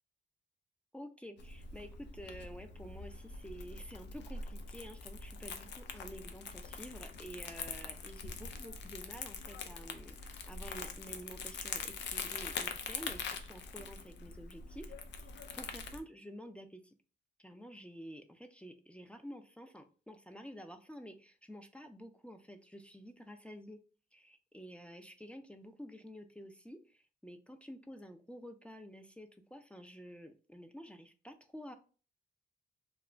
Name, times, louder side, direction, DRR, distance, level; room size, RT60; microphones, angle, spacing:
voice 1, 0.9-14.9 15.2-15.3 15.5-16.9 17.4-23.8 24.1-31.7, equal, 5° left, 5 dB, 0.3 m, -50 dB
Crumpling crinkling, 1.4-16.0, left 5 dB, 90° left, 0.4 m, -44 dB
2.4 x 2.1 x 3.2 m, 0.37 s
cardioid pair, 85°, 18 cm